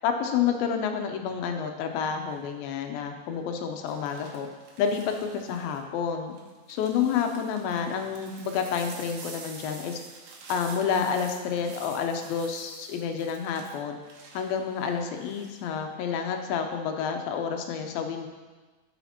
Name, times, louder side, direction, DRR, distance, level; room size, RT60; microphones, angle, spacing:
voice 1, 0.0-4.5 4.8-6.4 6.7-10.0 10.5-14.0 14.3-18.3, left 7 dB, 85° left, 4 dB, 2.5 m, -29 dB
sound 1, 2.2-2.6 3.9-5.8 6.3-15.6 16.0-16.4, right 4 dB, 75° right, 2.7 m, -48 dB
11.5 x 6.4 x 2.9 m, 1.3 s
omnidirectional pair, 4.1 m